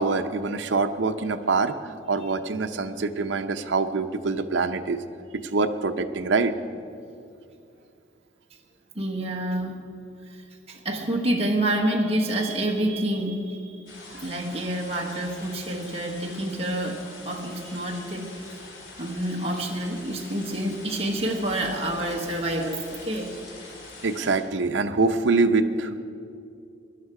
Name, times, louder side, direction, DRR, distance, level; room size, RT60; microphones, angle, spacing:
voice 1, 0.0-5.0 5.4-6.5 24.0-26.0, right 3 dB, 80° right, 7 dB, 0.7 m, -25 dB
voice 2, 8.9-9.8 10.3-13.9 14.2-18.5 19.0-23.3, right 1 dB, 35° right, 0 dB, 1.3 m, -28 dB
sound 1, 13.9-24.4, left 2 dB, 75° left, 3.0 m, -44 dB
18.0 x 11.5 x 4.8 m, 2.5 s
head